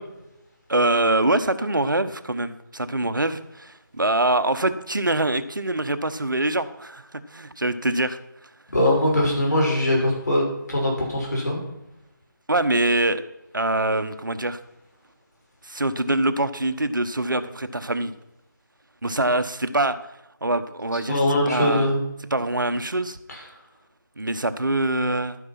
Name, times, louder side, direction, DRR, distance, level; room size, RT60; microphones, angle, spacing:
voice 1, 0.7-8.5 12.5-13.2 13.5-14.6 15.6-18.1 19.0-20.1 20.4-21.9 22.3-23.2 24.2-25.4, right 2 dB, 65° right, 11 dB, 1.1 m, -24 dB
voice 2, 8.7-10.4 10.7-11.6 21.1-22.0, left 1 dB, 50° left, -2 dB, 6.1 m, -21 dB
12.0 x 9.8 x 5.9 m, 0.87 s
figure-of-eight pair, 160°, 11 cm